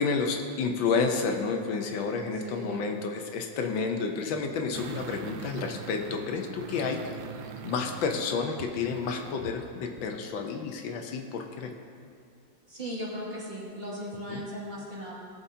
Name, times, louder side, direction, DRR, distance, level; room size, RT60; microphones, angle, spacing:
voice 1, 0.0-7.2 7.6-11.7 14.3-14.4, left 5 dB, 85° left, 4 dB, 1.5 m, -30 dB
voice 2, 2.4-2.8 12.7-15.1, equal, 30° right, -7 dB, 2.3 m, -37 dB
sound 1, 4.7-9.6 10.0-10.1, right 8 dB, 80° right, 1.3 m, -42 dB
18.0 x 6.9 x 2.7 m, 2.4 s
omnidirectional pair, 2.1 m